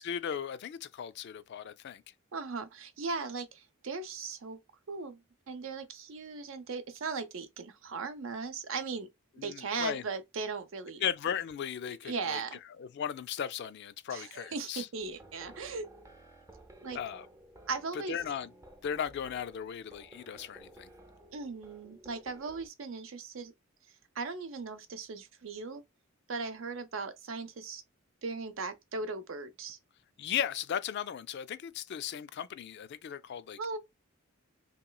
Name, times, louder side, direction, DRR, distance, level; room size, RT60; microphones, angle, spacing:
voice 1, 0.0-2.0 9.4-10.0 11.0-12.4 12.8-14.9 16.9-17.3 17.9-18.5 18.8-20.9 30.2-33.6, left 8 dB, 55° left, 0.3 m, -36 dB
voice 2, 2.3-4.6 4.9-5.2 5.5-9.1 9.4-11.0 12.0-12.6 14.1-15.9 16.8-17.0 17.7-18.2 21.3-23.5 24.2-25.8 26.3-27.8 28.2-29.8 33.6-33.8, right 4 dB, 70° right, 0.6 m, -38 dB
sound 1, 15.0-22.7, right 1 dB, 15° right, 0.5 m, -55 dB
3.0 x 3.0 x 2.2 m
head